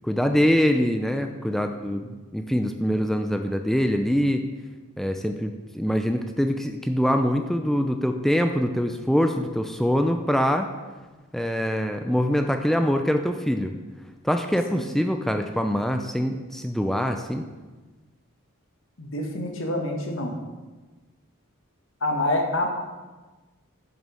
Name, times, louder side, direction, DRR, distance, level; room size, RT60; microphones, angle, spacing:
voice 1, 0.0-4.4 5.0-10.7 11.3-13.7 14.2-17.4, equal, ahead, 5 dB, 0.5 m, -24 dB
voice 2, 19.0-20.4 22.0-22.7, left 1 dB, 60° left, 2 dB, 1.8 m, -26 dB
10.5 x 6.6 x 6.2 m, 1.3 s
head